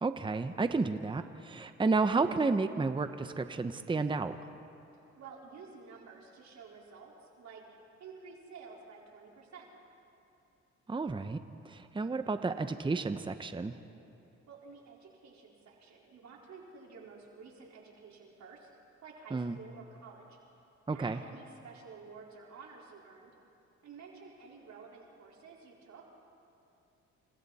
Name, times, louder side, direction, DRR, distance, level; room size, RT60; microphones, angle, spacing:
voice 1, 0.0-4.4 10.9-13.7 19.3-19.6 20.9-21.2, right 3 dB, 15° right, 9 dB, 0.9 m, -31 dB
voice 2, 5.2-7.6 8.0-9.7 14.5-18.7 19.0-20.4 20.9-23.3 23.8-26.0, right 5 dB, 65° right, -3 dB, 4.6 m, -51 dB
29.0 x 26.5 x 4.2 m, 2.7 s
cardioid pair, 90°, 30 cm